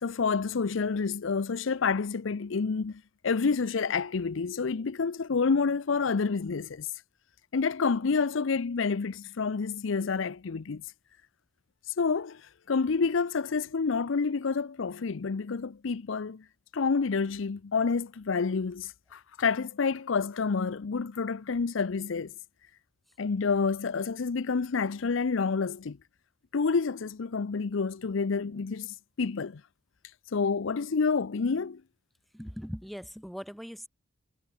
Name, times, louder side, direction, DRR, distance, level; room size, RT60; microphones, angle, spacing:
voice 1, 0.0-6.9 7.5-10.8 12.0-12.4 12.7-16.4 16.7-22.3 23.2-26.0 26.5-29.6 30.3-31.8, left 5 dB, 75° left, 0.6 m, -28 dB
voice 2, 32.3-33.9, equal, ahead, 0.9 m, -40 dB
head